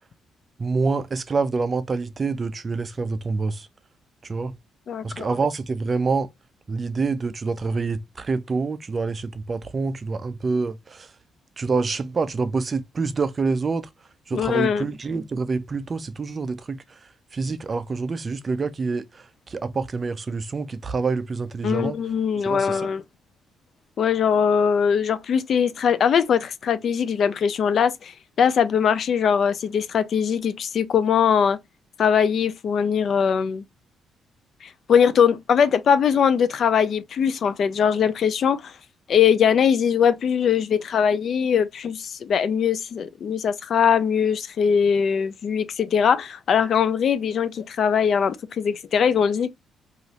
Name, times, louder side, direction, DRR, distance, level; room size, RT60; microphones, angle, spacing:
voice 1, 0.6-3.7 4.2-4.6 5.0-6.3 6.7-11.1 11.6-13.9 14.3-22.0 22.4-22.9, right 4 dB, 35° right, 0.4 m, -27 dB
voice 2, 4.9-5.3 14.3-14.9 21.6-23.0 24.0-31.6 32.0-33.6 34.6-38.7 39.1-49.5, left 7 dB, 60° left, 0.4 m, -21 dB
2.6 x 2.4 x 3.0 m
cardioid pair, 90°, 0 cm